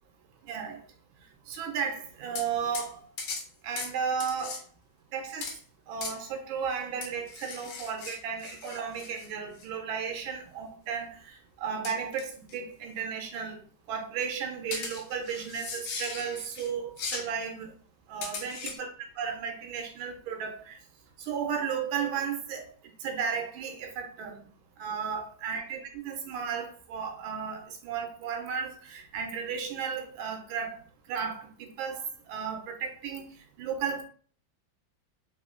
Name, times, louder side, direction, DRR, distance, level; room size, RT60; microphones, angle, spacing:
voice 1, 0.5-0.8 1.5-3.0 3.6-4.6 5.1-5.5 5.9-13.6 13.9-17.7 18.1-20.8 21.2-22.7 23.0-24.4 24.8-30.8 31.1-33.3 33.6-34.0, right 6 dB, 90° right, 1.4 m, -34 dB
sound 1, 2.3-2.5 2.7-2.9 3.2-3.5 3.8-3.9 4.2-4.6 5.4-5.6 6.0-6.2 7.0-9.3 9.6-9.7 11.8-12.2 12.5-12.6 14.7-16.7 17.0-17.3 18.2-18.8, left 4 dB, 80° left, 1.4 m, -38 dB
3.6 x 2.1 x 2.4 m
omnidirectional pair, 2.2 m